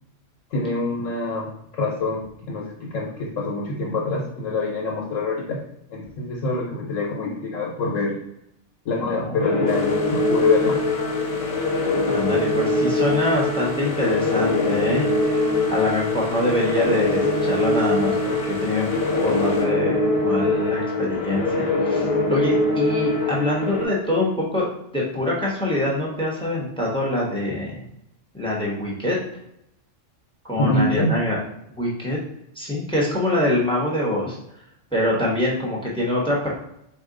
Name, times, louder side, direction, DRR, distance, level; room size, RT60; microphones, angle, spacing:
voice 1, 0.5-1.5 1.7-5.6 5.9-8.1 8.8-10.8 30.6-31.2, left 2 dB, 85° left, -3 dB, 1.2 m, -25 dB
voice 2, 9.0-9.7 12.0-15.4 15.7-27.8 28.3-29.2 30.4-31.4 31.8-32.2 32.5-34.4 34.9-36.5, left 1 dB, 5° left, -3 dB, 0.8 m, -25 dB
sound 1, 9.4-23.8, left 2 dB, 45° left, 0.4 m, -23 dB
sound 2, 9.7-19.7, equal, 60° left, 0.9 m, -37 dB
4.5 x 2.3 x 3.7 m, 0.77 s
omnidirectional pair, 1.3 m